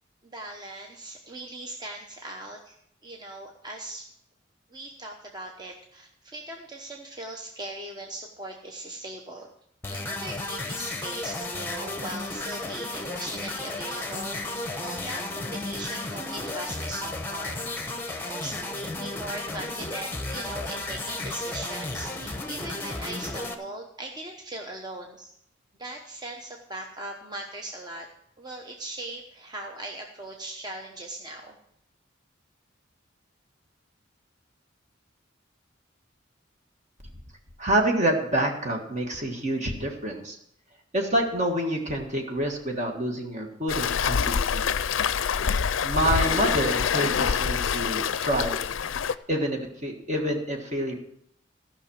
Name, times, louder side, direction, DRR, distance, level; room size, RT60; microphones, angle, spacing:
voice 1, 0.2-2.8 3.0-4.1 4.7-9.5 9.9-25.4 25.8-28.1 28.4-31.6, right 2 dB, 20° right, 1 dB, 0.9 m, -39 dB
sound 1, 9.8-23.5, left 2 dB, 10° left, 1.0 m, -33 dB
voice 2, 37.6-40.4 40.9-44.7 45.8-48.6 49.3-50.9, right 1 dB, 40° right, 2 dB, 1.6 m, -27 dB
Waves surf, 43.7-49.1, left 7 dB, 90° left, 0.5 m, -26 dB
14.5 x 5.9 x 7.1 m, 0.73 s
head